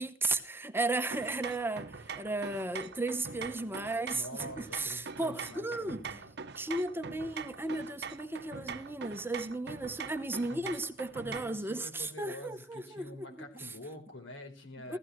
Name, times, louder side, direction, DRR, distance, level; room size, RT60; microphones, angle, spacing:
voice 1, 0.0-6.0 6.5-13.7 14.9-15.0, right 2 dB, 10° right, 1.0 m, -35 dB
sound 1, 1.1-11.6, right 5 dB, 60° right, 0.9 m, -43 dB
voice 2, 4.1-6.3 10.5-10.8 11.2-15.0, left 1 dB, 90° left, 4.2 m, -47 dB
16.0 x 14.5 x 3.1 m
head